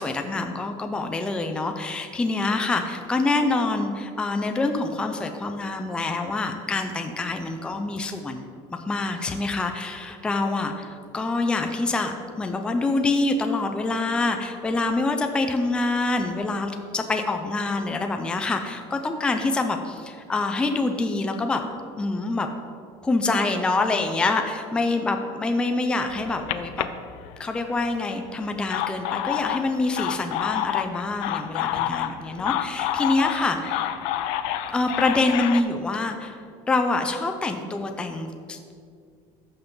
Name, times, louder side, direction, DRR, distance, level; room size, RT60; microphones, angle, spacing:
voice 1, 0.0-8.5 8.9-21.6 22.0-22.5 23.0-26.9 27.4-33.9 34.7-38.7, left 3 dB, 10° left, 6 dB, 0.4 m, -26 dB
sound 1, 26.1-27.7 28.4-35.6, left 11 dB, 65° left, 0.5 m, -28 dB
14.5 x 5.8 x 3.9 m, 2.3 s
cardioid pair, 170°, 12 cm